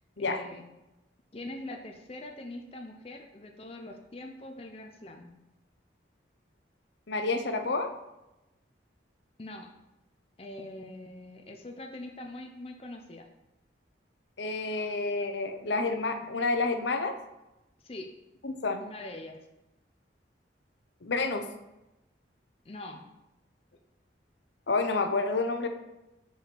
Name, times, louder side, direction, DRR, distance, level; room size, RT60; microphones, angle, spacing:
voice 1, 0.2-0.6 1.3-5.3 9.4-9.7 10.4-13.3 17.8-18.1 18.8-19.4 22.6-23.1, left 1 dB, 30° left, 3 dB, 0.6 m, -43 dB
voice 2, 7.1-7.9 14.4-17.1 18.4-18.8 21.0-21.5 24.7-25.7, left 3 dB, 70° left, 6 dB, 0.8 m, -29 dB
5.5 x 4.8 x 6.0 m, 0.95 s
head